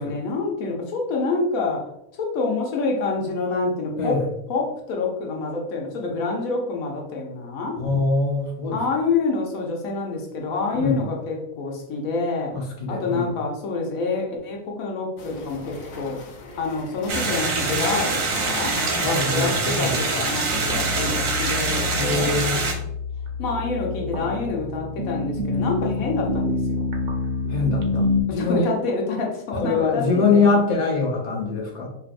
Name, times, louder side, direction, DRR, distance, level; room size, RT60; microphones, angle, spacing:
voice 1, 0.0-4.2 4.5-7.8 8.7-12.5 12.9-16.2 16.6-18.8 19.3-22.3 23.4-26.9 28.3-30.4, left 3 dB, 85° left, 0 dB, 1.2 m, -27 dB
voice 2, 7.8-8.8 10.7-11.0 12.5-13.3 19.0-20.0 22.0-22.6 27.5-28.7 29.6-31.9, left 4 dB, 35° left, -2 dB, 0.8 m, -23 dB
sound 1, 15.2-20.6, left 2 dB, 65° left, 0.9 m, -40 dB
sound 2, 17.1-22.7, right 3 dB, 75° right, 1.2 m, -24 dB
sound 3, 20.5-28.2, left 3 dB, 50° right, 0.6 m, -27 dB
4.6 x 3.0 x 2.5 m, 0.81 s
omnidirectional pair, 1.4 m